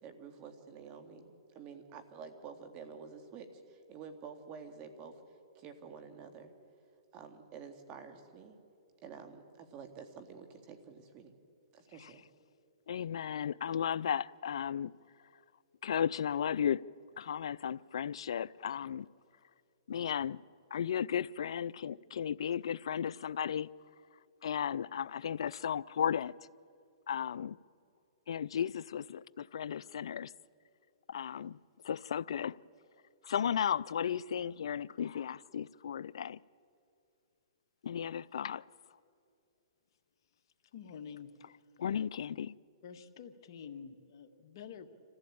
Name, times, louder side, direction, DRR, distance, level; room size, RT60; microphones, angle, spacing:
voice 1, 0.0-5.1 5.5-6.5 7.1-8.5 9.0-11.3 11.7-12.2, right 6 dB, 30° right, 2.1 m, -49 dB
voice 2, 12.9-14.9 15.8-16.8 17.2-19.1 19.9-20.4 20.7-23.7 24.4-26.3 27.1-27.6 28.3-30.3 31.1-31.6 31.8-32.6 33.2-36.4 37.8-38.6 41.8-42.5, left 8 dB, 75° left, 0.4 m, -35 dB
voice 3, 40.7-41.3 42.8-44.9, left 7 dB, 55° left, 1.6 m, -48 dB
26.5 x 15.0 x 8.7 m
hypercardioid pair, 140°, 3 cm